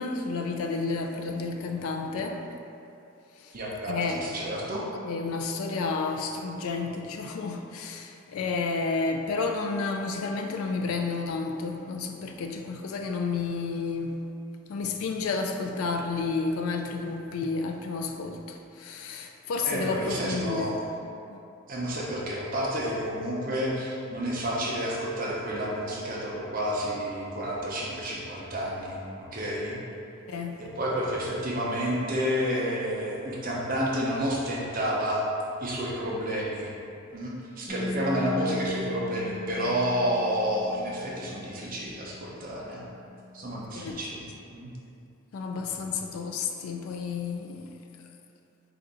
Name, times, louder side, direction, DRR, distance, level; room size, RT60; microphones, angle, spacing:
voice 1, 0.0-2.5 3.4-3.5 3.9-4.2 5.0-14.2 14.7-20.8 21.3-21.4 30.3-30.6 43.7-44.0 45.3-47.8, left 4 dB, 75° left, 4 dB, 0.3 m, -31 dB
voice 2, 3.5-4.8 19.6-20.8 21.7-29.8 30.6-35.2 35.6-36.7 37.1-42.8 43.3-44.3 44.5-44.7 45.7-45.8, equal, 40° right, -4 dB, 0.6 m, -30 dB
Bass guitar, 37.7-43.9, left 3 dB, 50° left, 1.0 m, -39 dB
4.4 x 2.5 x 3.8 m, 2.7 s
head